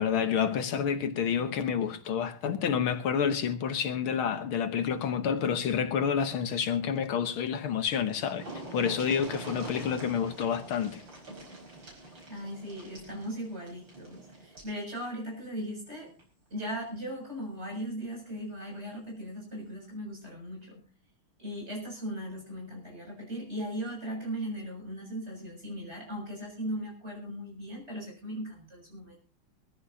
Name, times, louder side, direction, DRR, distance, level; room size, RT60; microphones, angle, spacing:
voice 1, 0.0-8.5 8.7-11.0, left 7 dB, 80° left, 2.0 m, -29 dB
sound 1, 7.7-7.8 8.0-14.8 16.1-16.2 16.6-16.7, right 2 dB, 60° right, 5.9 m, -45 dB
voice 2, 12.3-16.1 16.5-20.8 21.4-29.2, equal, 30° right, 7.6 m, -38 dB
23.0 x 14.5 x 2.8 m
omnidirectional pair, 2.3 m